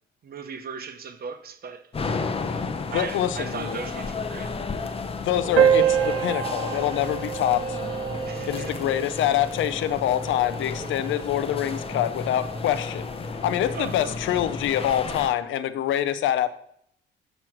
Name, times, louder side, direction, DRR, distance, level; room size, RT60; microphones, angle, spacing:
voice 1, 0.2-1.9 2.9-4.5 8.2-8.9 13.7-14.2, right 6 dB, 50° right, 9 dB, 0.8 m, -37 dB
sound 1, 1.9-15.3, left 4 dB, 30° left, 0.6 m, -33 dB
voice 2, 2.6-3.8 5.2-7.8 8.5-13.1 13.4-16.5, left 11 dB, 75° left, 13 dB, 0.5 m, -25 dB
sound 2, 5.4-13.9, right 3 dB, 25° right, 1.2 m, -40 dB
sound 3, 5.6-10.5, right 9 dB, 90° right, 0.7 m, -26 dB
7.6 x 3.0 x 5.9 m, 0.70 s
cardioid pair, 90°, 20 cm